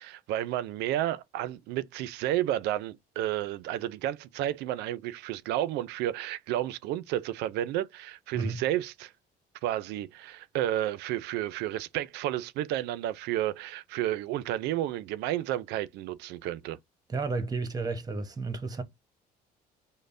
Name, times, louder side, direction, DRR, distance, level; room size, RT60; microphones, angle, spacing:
voice 1, 0.0-9.1 9.6-16.8, right 13 dB, 85° right, 0.4 m, -31 dB
voice 2, 17.1-18.8, right 3 dB, 20° right, 0.8 m, -32 dB
5.2 x 2.0 x 2.5 m
cardioid pair, 110°, 17 cm